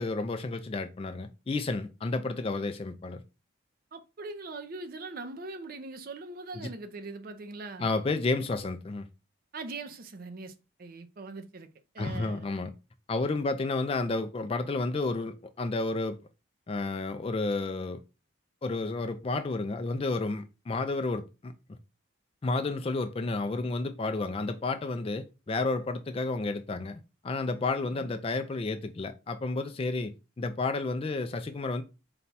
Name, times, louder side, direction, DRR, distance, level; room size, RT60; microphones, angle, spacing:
voice 1, 0.0-3.2 6.5-6.7 7.8-9.1 12.0-12.7 13.1-16.2 16.7-18.0 18.6-21.5 22.4-27.0 27.2-31.8, left 3 dB, 30° left, 0.3 m, -31 dB
voice 2, 3.9-7.9 9.5-11.7 11.9-12.5 27.9-28.2, right 3 dB, 45° right, 0.5 m, -41 dB
4.1 x 2.2 x 4.0 m
head